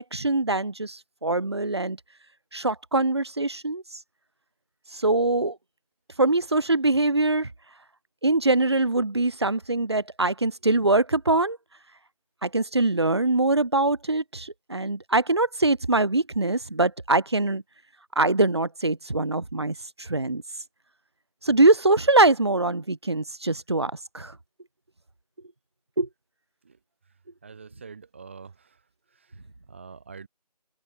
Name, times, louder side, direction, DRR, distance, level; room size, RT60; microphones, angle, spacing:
voice 1, 0.0-2.0 2.5-3.8 4.9-5.6 6.2-7.5 8.2-11.6 12.4-17.6 18.2-20.4 21.4-24.3 26.0-26.1, right 2 dB, 40° right, 0.8 m, -23 dB
voice 2, 27.4-28.8 29.1-29.3 29.7-30.3, right 5 dB, 20° right, 2.9 m, -45 dB
figure-of-eight pair, 170°, 21 cm